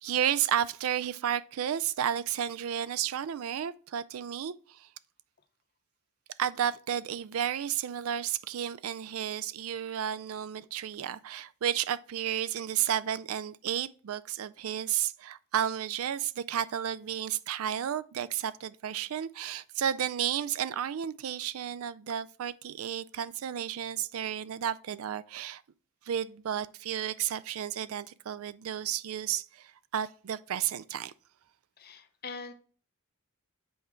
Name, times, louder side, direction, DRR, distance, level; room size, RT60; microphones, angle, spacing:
voice 1, 0.0-4.9 6.4-25.6 26.1-31.1, right 9 dB, 70° right, 0.4 m, -32 dB
voice 2, 31.8-32.5, left 4 dB, 45° left, 0.8 m, -42 dB
7.8 x 4.5 x 3.6 m
head